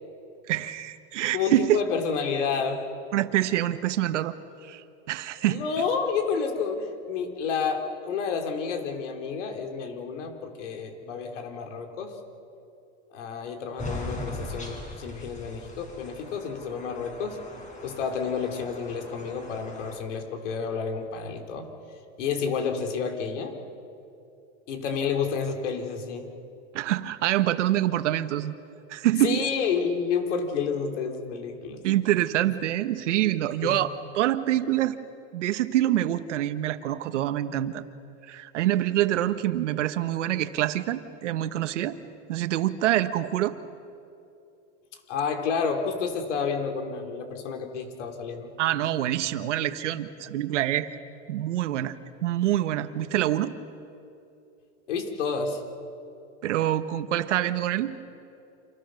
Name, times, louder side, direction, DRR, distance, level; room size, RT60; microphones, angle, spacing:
voice 1, 0.5-1.8 3.1-4.3 4.6-5.6 26.7-28.5 28.9-29.4 31.8-35.0 35.3-37.8 38.3-42.0 42.3-43.5 48.6-50.9 51.3-53.5 56.4-57.9, right 13 dB, 90° right, 10 dB, 1.2 m, -26 dB
voice 2, 1.3-2.9 5.5-12.2 13.1-17.4 17.8-21.7 22.2-23.6 24.7-26.3 29.2-31.8 33.6-33.8 45.1-48.5 54.9-55.6, left 6 dB, 85° left, 4 dB, 3.8 m, -30 dB
sound 1, 13.8-20.0, left 1 dB, 20° left, 6.9 m, -40 dB
29.5 x 27.0 x 6.5 m, 2.7 s
supercardioid pair, 120°, 35 cm